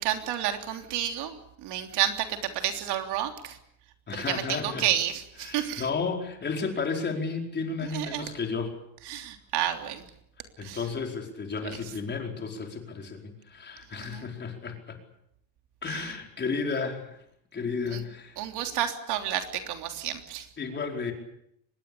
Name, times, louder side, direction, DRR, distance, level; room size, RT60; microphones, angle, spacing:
voice 1, 0.0-3.6 4.1-5.8 7.9-8.2 9.1-10.0 10.6-10.8 14.0-14.2 15.9-16.1 17.9-18.0 18.4-20.5, right 11 dB, 70° right, 6 dB, 3.4 m, -30 dB
voice 2, 4.1-4.9 5.4-8.8 10.6-15.0 15.8-17.2 17.5-18.4 20.6-21.1, left 4 dB, 25° left, 3 dB, 4.7 m, -33 dB
24.5 x 20.5 x 8.6 m, 0.75 s
cardioid pair, 165°, 41 cm